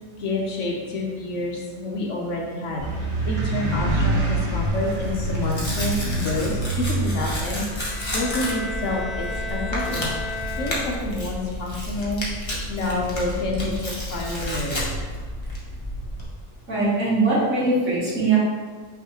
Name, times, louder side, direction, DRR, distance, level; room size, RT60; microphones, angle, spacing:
voice 1, 0.2-12.3 12.7-14.8, left 2 dB, 60° left, -1 dB, 0.8 m, -28 dB
sound 1, 2.8-7.4, right 2 dB, 20° right, 1.5 m, -25 dB
Tearing, 3.9-16.2, left 1 dB, 25° left, 0.7 m, -31 dB
Bowed string instrument, 7.7-11.4, left 3 dB, 80° right, 1.4 m, -34 dB
voice 2, 16.7-18.4, right 3 dB, 55° right, -8 dB, 1.9 m, -21 dB
5.7 x 3.1 x 3.0 m, 1.5 s
omnidirectional pair, 1.7 m